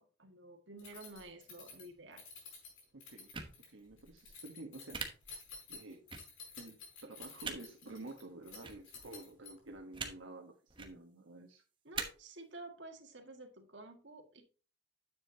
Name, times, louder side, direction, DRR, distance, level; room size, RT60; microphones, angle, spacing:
voice 1, 0.0-2.2 11.8-14.4, right 2 dB, 65° right, 3 dB, 1.9 m, -51 dB
Keys jangling, 0.8-9.8, left 5 dB, 90° left, 4.8 m, -53 dB
voice 2, 2.9-3.3 3.7-5.1 5.7-6.0 6.6-11.6, right 2 dB, 90° right, 1 dB, 1.3 m, -50 dB
sound 1, 3.3-3.5 4.9-5.1 6.1-6.2 7.4-7.6 8.6-8.8 9.9-10.1 10.7-10.9 11.9-12.0, right 5 dB, 25° right, 1.1 m, -39 dB
9.9 x 7.4 x 2.8 m, 0.37 s
head